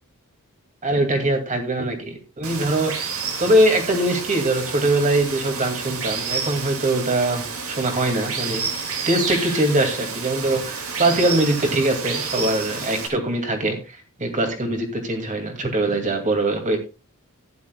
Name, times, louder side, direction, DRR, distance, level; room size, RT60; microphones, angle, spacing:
voice 1, 0.8-3.0 3.4-16.8, right 1 dB, 35° right, 4 dB, 2.5 m, -22 dB
Water, 2.4-13.1, right 5 dB, 70° right, 2.4 m, -30 dB
15.0 x 10.5 x 2.4 m, 0.29 s
head